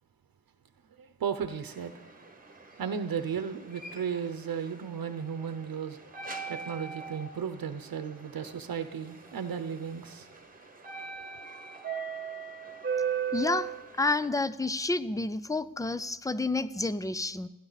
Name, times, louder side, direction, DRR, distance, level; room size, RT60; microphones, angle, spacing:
voice 1, 1.0-1.9 2.8-6.0 6.5-10.3, right 7 dB, 75° right, 9 dB, 0.9 m, -35 dB
sound 1, 1.7-14.3, right 6 dB, 25° right, 1.3 m, -39 dB
voice 2, 13.3-17.5, left 2 dB, 10° left, 15 dB, 0.4 m, -30 dB
29.0 x 10.0 x 4.1 m, 1.0 s
wide cardioid pair, 135°, 35 cm